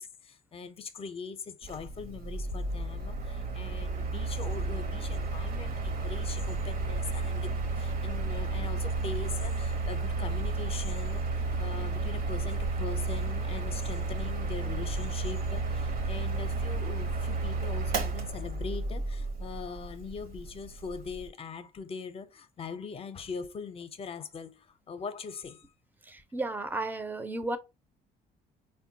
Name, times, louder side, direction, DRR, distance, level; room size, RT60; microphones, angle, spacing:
voice 1, 0.0-25.6, left 5 dB, 35° left, 0.6 m, -41 dB
Mechanical fan, 1.6-21.3, right 3 dB, 60° right, 0.8 m, -32 dB
voice 2, 26.0-27.6, right 2 dB, 10° right, 0.5 m, -33 dB
4.3 x 2.2 x 2.7 m
cardioid pair, 110°, 17 cm